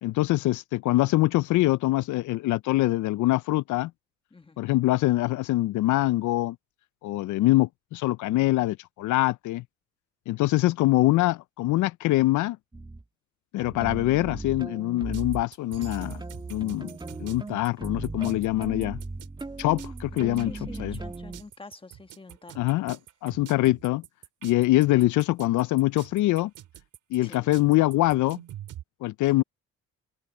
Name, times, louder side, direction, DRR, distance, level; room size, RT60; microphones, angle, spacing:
voice 1, 0.0-3.9 4.6-6.6 7.0-9.6 10.3-12.6 13.5-16.2 16.5-16.9 17.2-19.0 19.6-20.5 20.8-21.0 22.6-23.0 23.2-24.0 24.4-26.5 27.1-28.4 29.0-29.4, left 17 dB, 75° left, 0.5 m, -24 dB
sound 1, 12.7-13.0 13.6-15.4 15.8-21.4, right 2 dB, 15° right, 1.7 m, -37 dB
sound 2, 15.1-28.8, right 12 dB, 80° right, 3.5 m, -46 dB
voice 2, 20.1-22.9 27.2-27.6, left 3 dB, 15° left, 1.4 m, -47 dB
cardioid pair, 90°, 30 cm